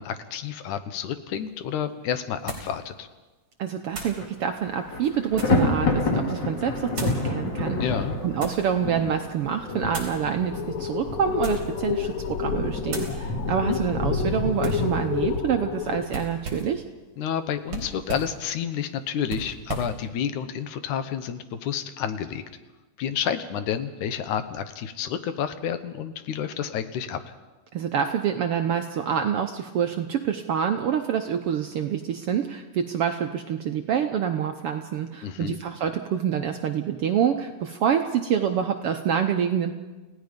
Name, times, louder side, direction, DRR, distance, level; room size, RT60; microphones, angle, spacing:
voice 1, 0.0-3.1 7.8-8.1 13.7-13.8 17.2-22.4 23.0-27.2 35.2-35.6, left 8 dB, 75° left, 10 dB, 2.5 m, -30 dB
sound 1, 1.3-1.4 2.5-2.8 3.9-4.2 4.9-5.7 6.9-7.2 8.0-8.7 9.9-10.2 11.3-11.8 12.2-12.5 12.9-13.2 14.6-14.9 16.1-16.8 17.7-18.4 19.3-20.0, right 3 dB, 45° right, 4.6 m, -36 dB
voice 2, 3.6-7.9 8.2-16.8 27.7-39.7, right 8 dB, 70° right, 6 dB, 1.3 m, -26 dB
Thunder, 3.9-4.3 4.6-15.4, left 2 dB, 40° left, 2.5 m, -29 dB
sound 2, 10.5-16.1, left 7 dB, 55° left, 1.9 m, -30 dB
29.0 x 17.0 x 5.2 m, 1.2 s
omnidirectional pair, 3.5 m